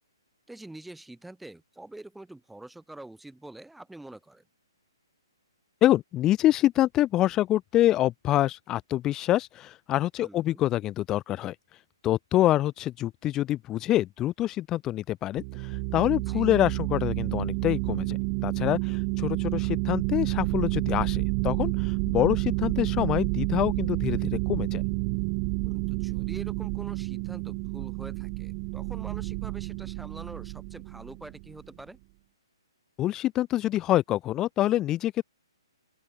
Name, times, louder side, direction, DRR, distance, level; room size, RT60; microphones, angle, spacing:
voice 1, 0.5-4.4 10.2-10.6 16.3-16.5 25.6-32.0, right 2 dB, 5° right, 0.9 m, -45 dB
voice 2, 5.8-11.5 12.0-24.8 33.0-35.2, left 14 dB, 20° left, 0.4 m, -26 dB
sound 1, 15.4-31.6, right 40 dB or more, 30° right, 0.6 m, -29 dB
open air
figure-of-eight pair, 130°, 3 cm